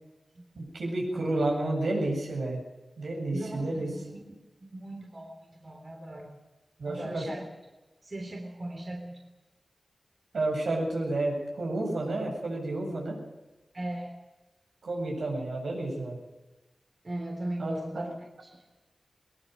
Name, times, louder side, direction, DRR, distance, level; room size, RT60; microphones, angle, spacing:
voice 1, 0.6-2.6 3.0-3.9 6.8-7.2 10.3-13.2 14.8-16.2 17.6-18.1, right 2 dB, 80° right, 0 dB, 7.9 m, -30 dB
voice 2, 3.3-6.3 6.8-7.4 8.0-9.2 13.7-14.1 17.0-18.6, right 1 dB, 40° right, 2 dB, 3.5 m, -39 dB
21.0 x 20.5 x 6.6 m, 1.1 s
wide cardioid pair, 105°, 0 cm